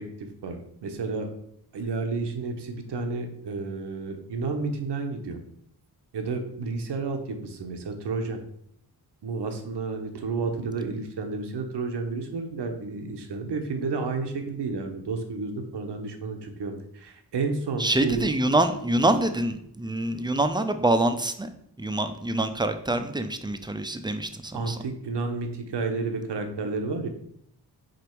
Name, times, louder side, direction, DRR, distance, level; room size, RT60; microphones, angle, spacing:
voice 1, 0.0-1.3 1.7-5.4 6.1-8.4 9.2-18.3 24.5-27.1, right 4 dB, 85° right, 5 dB, 0.9 m, -31 dB
voice 2, 17.8-21.5 21.8-24.8, right 1 dB, 10° right, 8 dB, 0.5 m, -25 dB
5.2 x 3.9 x 4.5 m, 0.70 s
wide cardioid pair, 120°, 40 cm